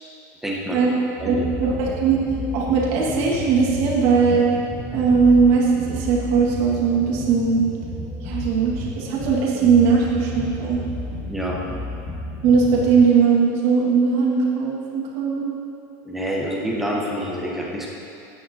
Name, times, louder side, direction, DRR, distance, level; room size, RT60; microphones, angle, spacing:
voice 1, 0.4-0.8 1.2-1.8 11.3-11.6 16.0-17.9, equal, 5° right, -4 dB, 1.1 m, -27 dB
sound 1, 1.2-13.0, left 1 dB, 25° left, 1.2 m, -32 dB
voice 2, 1.3-2.2 2.5-4.5 4.9-7.6 8.2-10.8 12.4-15.4, right 5 dB, 60° right, -4 dB, 1.9 m, -19 dB
14.5 x 9.1 x 2.9 m, 2.6 s
cardioid pair, 160°, 9 cm